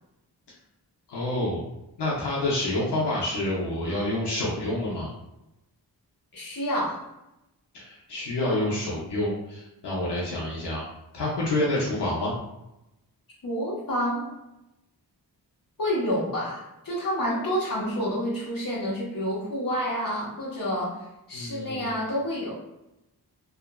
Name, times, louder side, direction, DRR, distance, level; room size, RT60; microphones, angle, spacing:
voice 1, 1.1-1.6 2.0-5.1 7.7-10.8 11.1-12.3 21.3-21.9, left 1 dB, 80° left, -6 dB, 0.7 m, -28 dB
voice 2, 6.3-7.0 13.4-14.3 15.8-21.0 21.3-22.5, equal, 55° left, -5 dB, 1.0 m, -28 dB
2.9 x 2.4 x 2.2 m, 0.92 s
wide cardioid pair, 110°, 40 cm